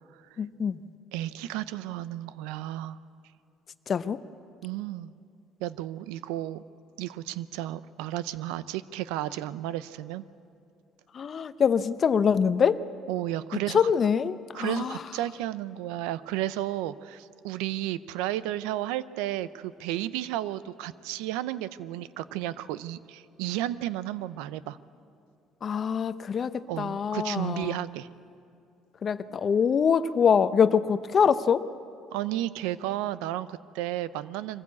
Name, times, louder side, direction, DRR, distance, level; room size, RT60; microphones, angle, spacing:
voice 1, 0.4-0.8 3.9-4.2 11.1-12.8 13.7-15.0 25.6-27.8 29.0-31.6, left 7 dB, 45° left, 13 dB, 0.8 m, -24 dB
voice 2, 1.1-3.0 4.6-5.1 5.6-6.6 7.0-10.2 13.1-13.9 14.5-24.8 26.7-28.1 32.1-34.6, right 14 dB, 85° right, 16 dB, 0.6 m, -33 dB
23.5 x 15.0 x 8.4 m, 2.5 s
supercardioid pair, 85°, 0 cm